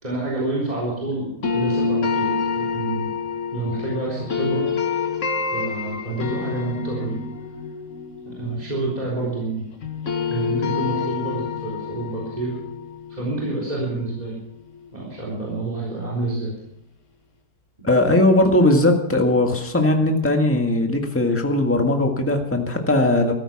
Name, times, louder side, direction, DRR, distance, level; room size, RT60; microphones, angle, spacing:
voice 1, 0.0-3.1 3.5-4.7 5.5-7.2 8.2-9.6 10.3-12.6 13.1-14.4 14.9-16.5, right 2 dB, 25° right, -5 dB, 3.9 m, -28 dB
sound 1, 1.4-9.5 9.8-14.8, left 5 dB, 50° left, 1.8 m, -27 dB
voice 2, 17.8-23.3, left 1 dB, 10° left, 3 dB, 1.7 m, -19 dB
14.5 x 14.0 x 6.0 m, 0.76 s
omnidirectional pair, 1.7 m